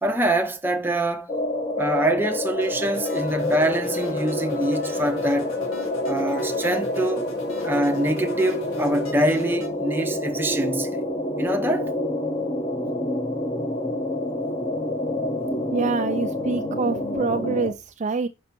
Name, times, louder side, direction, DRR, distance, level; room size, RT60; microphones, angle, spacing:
voice 1, 0.0-1.3 1.8-5.5 6.1-7.3 7.6-11.0 11.4-11.9, right 1 dB, 10° right, 0.7 m, -24 dB
sound 1, 1.3-17.7, left 1 dB, 25° left, 1.0 m, -27 dB
sound 2, 2.6-9.7, left 2 dB, 85° left, 2.1 m, -44 dB
sound 3, 2.9-9.2, left 4 dB, 55° left, 1.4 m, -43 dB
voice 2, 15.7-18.3, right 4 dB, 35° right, 0.4 m, -26 dB
5.4 x 5.3 x 5.9 m
head